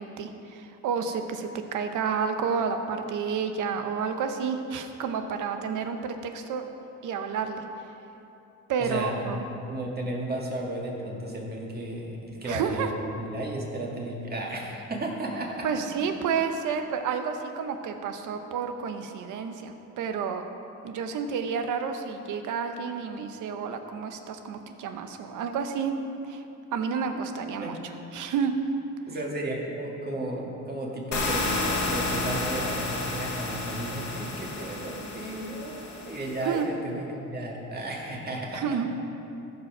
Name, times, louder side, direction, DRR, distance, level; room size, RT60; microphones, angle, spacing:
voice 1, 0.0-6.7 7.0-7.6 8.7-9.4 12.5-12.9 15.6-20.4 20.8-25.9 26.2-26.4 26.7-27.8 28.1-28.5 36.4-36.7 38.5-38.9, right 6 dB, 80° right, 7 dB, 0.9 m, -30 dB
voice 2, 8.8-15.8 27.6-27.8 29.1-38.9, right 1 dB, 30° right, -2 dB, 2.2 m, -34 dB
sound 1, 31.1-36.6, left 2 dB, 75° left, 1.9 m, -31 dB
14.5 x 5.2 x 6.0 m, 2.9 s
cardioid pair, 90°, 30 cm